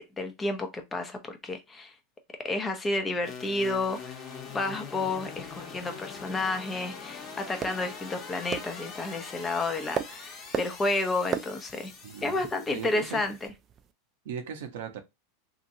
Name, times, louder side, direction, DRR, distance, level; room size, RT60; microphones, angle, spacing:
voice 1, 0.0-1.9 2.4-4.2 4.5-11.9 12.2-13.4, left 2 dB, 20° left, 0.8 m, -31 dB
sound 1, 3.2-13.5, left 5 dB, 35° left, 1.0 m, -43 dB
sound 2, 5.1-13.9, right 8 dB, 30° right, 0.3 m, -40 dB
voice 2, 12.0-12.4 12.7-13.2 14.2-15.0, right 7 dB, 75° right, 0.8 m, -38 dB
2.9 x 2.5 x 2.7 m
hypercardioid pair, 115°, 0 cm